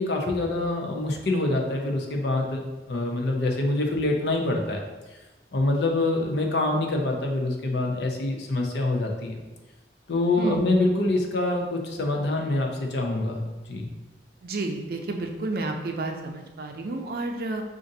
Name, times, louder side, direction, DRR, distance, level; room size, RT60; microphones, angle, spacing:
voice 1, 0.0-4.8 5.5-9.4 10.1-13.9, left 2 dB, 75° left, 1 dB, 0.6 m, -25 dB
voice 2, 14.4-17.6, right 2 dB, 55° right, 3 dB, 0.4 m, -30 dB
5.0 x 2.5 x 2.6 m, 1.1 s
head